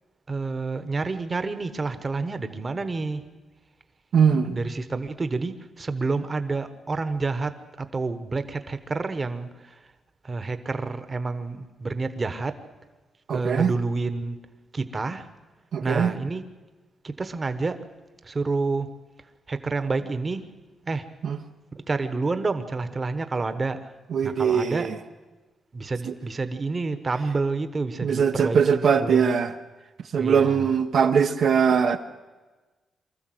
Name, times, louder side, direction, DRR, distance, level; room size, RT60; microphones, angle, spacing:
voice 1, 0.3-3.2 4.5-9.8 10.2-12.6 13.3-14.4 14.7-15.3 15.8-16.4 17.0-17.8 18.2-18.9 19.5-20.5 20.9-21.1 21.7-23.9 24.2-24.9 25.7-28.6 29.0-29.3 30.1-30.8, right 3 dB, 25° right, 10 dB, 1.1 m, -29 dB
voice 2, 4.1-4.6 13.3-13.7 15.7-16.1 21.2-21.4 24.1-24.9 26.1-26.2 28.0-29.5 30.1-32.0, right 6 dB, 60° right, 6 dB, 0.8 m, -21 dB
24.0 x 14.0 x 7.9 m, 1.2 s
wide cardioid pair, 145°, 0 cm